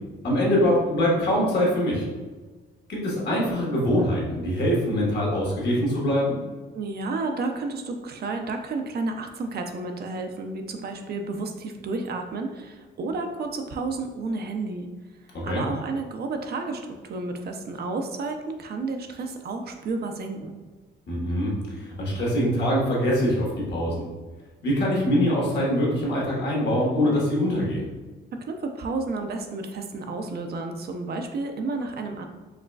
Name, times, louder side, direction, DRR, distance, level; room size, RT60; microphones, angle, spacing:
voice 1, 0.2-2.1 2.9-6.4 15.5-15.6 21.1-24.0 24.6-27.9, equal, 60° left, -4 dB, 1.4 m, -23 dB
voice 2, 6.7-14.9 15.4-20.5 28.3-32.3, right 3 dB, 55° right, 5 dB, 0.5 m, -31 dB
4.8 x 3.0 x 2.3 m, 1.3 s
cardioid pair, 90°, 20 cm